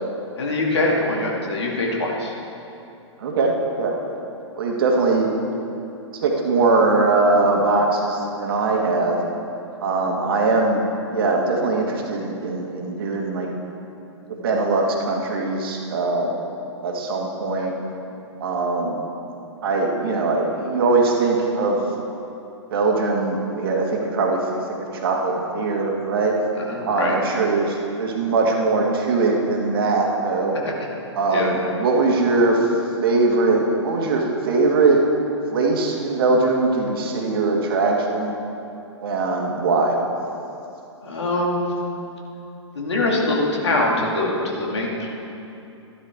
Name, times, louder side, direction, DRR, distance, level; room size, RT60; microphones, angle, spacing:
voice 1, 0.4-2.3 26.7-27.2 30.6-30.7 31.3-31.5 41.0-41.7 42.7-45.1, left 2 dB, 65° left, -2 dB, 2.3 m, -23 dB
voice 2, 3.2-3.9 4.6-5.4 6.1-9.2 9.8-10.8 11.1-13.5 14.3-16.4 16.8-17.7 18.4-19.1 19.6-21.8 22.7-26.4 26.8-30.6 31.2-32.7 33.0-35.1 35.5-38.3 39.0-40.0, right 3 dB, 50° right, 0 dB, 1.7 m, -21 dB
13.0 x 12.0 x 3.6 m, 2.8 s
figure-of-eight pair, 110°, 15 cm